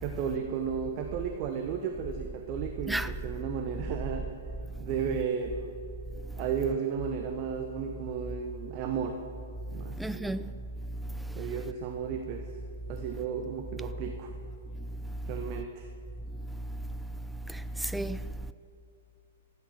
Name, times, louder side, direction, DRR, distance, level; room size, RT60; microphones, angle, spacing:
voice 1, 0.0-4.3 4.8-5.7 6.4-9.2 9.7-10.4 11.4-12.5 12.9-14.3 15.3-15.9, right 7 dB, 35° right, 0.8 m, -34 dB
voice 2, 10.0-10.5 11.4-11.5 17.5-18.2, right 1 dB, ahead, 0.4 m, -33 dB
12.5 x 8.7 x 7.3 m
figure-of-eight pair, 110°, 0 cm